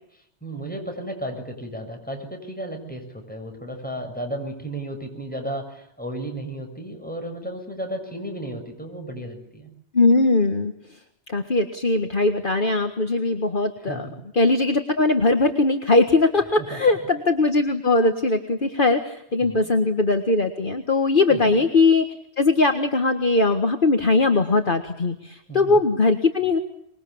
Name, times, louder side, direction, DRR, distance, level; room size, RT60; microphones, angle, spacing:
voice 1, 0.4-9.7 13.8-14.2 16.7-17.0 19.4-19.7 21.3-21.6 25.5-25.8, right 1 dB, 10° left, 3 dB, 7.1 m, -34 dB
voice 2, 9.9-10.7 11.3-14.1 14.3-22.1 22.4-26.6, left 3 dB, 50° left, 5 dB, 1.8 m, -20 dB
25.5 x 22.5 x 8.6 m, 0.77 s
omnidirectional pair, 1.2 m